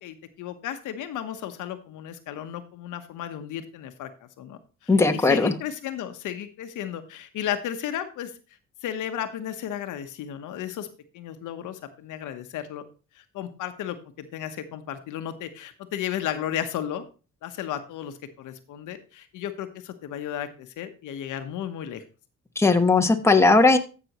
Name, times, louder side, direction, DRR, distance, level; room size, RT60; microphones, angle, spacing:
voice 1, 0.0-8.3 8.8-10.9 11.1-12.8 13.1-17.0 17.4-22.0, left 10 dB, 85° left, 8 dB, 1.1 m, -34 dB
voice 2, 4.9-5.5 22.6-23.8, left 3 dB, 10° left, 5 dB, 1.1 m, -18 dB
14.5 x 6.1 x 3.0 m, 0.34 s
cardioid pair, 90°, 30 cm